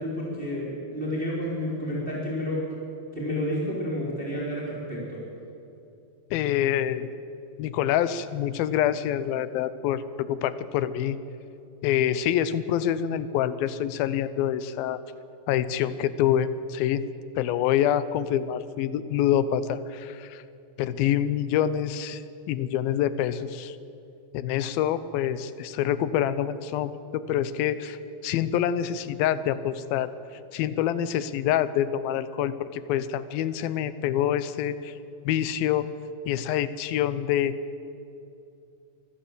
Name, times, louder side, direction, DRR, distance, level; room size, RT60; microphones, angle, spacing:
voice 1, 0.0-2.6 3.1-5.2, left 1 dB, 15° right, -4 dB, 4.0 m, -30 dB
voice 2, 6.3-7.1 7.6-11.2 11.8-15.0 15.5-17.0 17.4-20.4 20.8-22.2 22.5-23.8 24.3-30.1 30.5-35.0 35.2-35.9 36.3-37.6, left 10 dB, 85° left, 14 dB, 2.6 m, -26 dB
24.5 x 14.5 x 8.0 m, 2.7 s
omnidirectional pair, 4.1 m